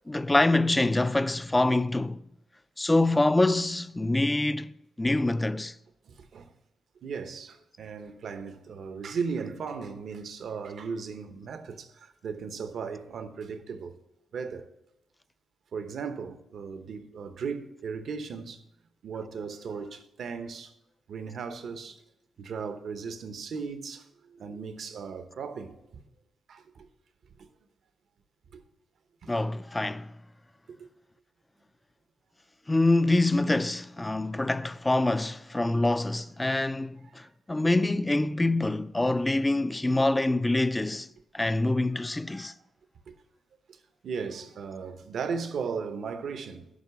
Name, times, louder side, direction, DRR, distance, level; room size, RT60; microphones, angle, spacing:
voice 1, 0.1-2.2 2.8-5.7 29.3-30.1 32.7-41.1 41.3-42.5, left 2 dB, 15° left, 0.4 m, -25 dB
voice 2, 6.1-6.5 7.0-13.9 14.3-14.7 15.7-18.6 19.0-20.7 21.1-22.0 22.4-26.0 26.5-26.9 27.4-27.5 28.5-28.6 29.2-29.3 30.7-30.9 43.1-43.2 43.7-46.7, right 5 dB, 70° right, 0.9 m, -37 dB
10.5 x 5.7 x 7.0 m
cardioid pair, 115°, 0 cm